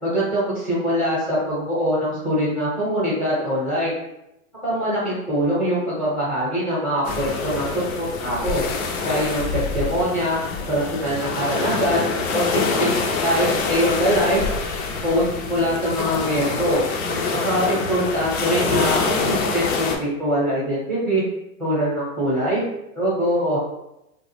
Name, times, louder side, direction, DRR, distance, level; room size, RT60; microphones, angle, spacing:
voice 1, 0.0-3.9 4.6-7.7 8.0-8.6 9.0-10.4 10.7-12.0 12.3-14.4 14.8-16.8 17.4-21.2 21.6-22.6 23.0-23.6, equal, ahead, -7 dB, 0.7 m, -23 dB
sound 1, 7.0-20.0, left 4 dB, 50° left, 0.5 m, -25 dB
2.2 x 2.1 x 2.9 m, 0.86 s
hypercardioid pair, 115°, 43 cm